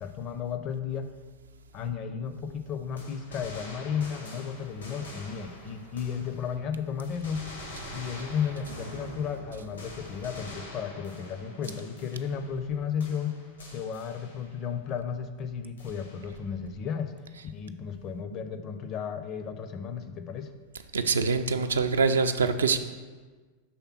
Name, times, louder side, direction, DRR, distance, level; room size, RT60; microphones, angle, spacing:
voice 1, 0.0-1.1 1.7-7.4 7.9-13.4 13.7-17.1 17.5-20.5, left 7 dB, 35° left, 8 dB, 0.5 m, -34 dB
sound 1, 3.0-6.7 7.0-12.7 13.0-14.7 15.8-16.5, left 1 dB, 75° left, 1.0 m, -45 dB
voice 2, 20.9-22.8, right 4 dB, 70° right, 8 dB, 0.3 m, -24 dB
5.7 x 3.4 x 5.7 m, 1.4 s
figure-of-eight pair, 90°, 0 cm